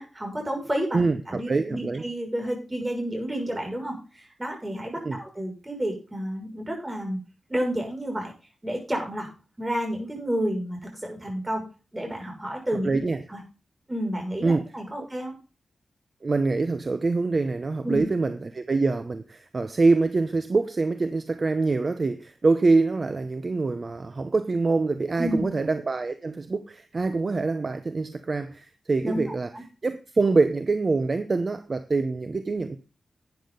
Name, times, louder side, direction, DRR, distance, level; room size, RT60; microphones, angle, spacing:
voice 1, 0.0-3.9 4.4-7.2 7.5-8.3 8.6-9.3 9.6-11.6 11.9-13.0 13.3-13.4 13.9-15.4 17.8-18.0 25.2-25.4 29.0-29.2 29.5-29.6, equal, 15° right, 6.3 m, -30 dB
voice 2, 1.5-2.0 5.0-5.2 12.8-13.2 14.4-14.6 16.2-29.5 29.8-32.8, right 3 dB, 40° right, 0.8 m, -25 dB
12.0 x 9.8 x 3.9 m
wide cardioid pair, 90°, 0 cm